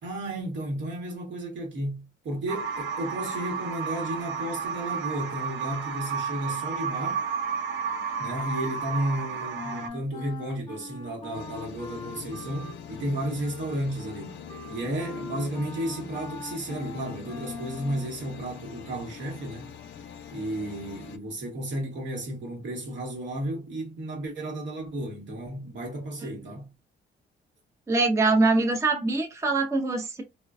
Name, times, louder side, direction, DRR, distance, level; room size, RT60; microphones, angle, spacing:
voice 1, 0.0-7.2 8.2-14.4 14.7-19.7 20.3-26.7, right 1 dB, 70° right, 1.3 m, -33 dB
sound 1, 2.5-9.9, right 6 dB, 85° right, 0.4 m, -32 dB
Wind instrument woodwind instrument, 9.5-18.1, left 2 dB, 25° left, 0.8 m, -41 dB
sound 2, 11.3-21.2, left 8 dB, 70° left, 0.5 m, -43 dB
voice 2, 27.9-30.2, right 3 dB, 15° right, 0.5 m, -23 dB
2.3 x 2.2 x 2.4 m
cardioid pair, 90°, 20 cm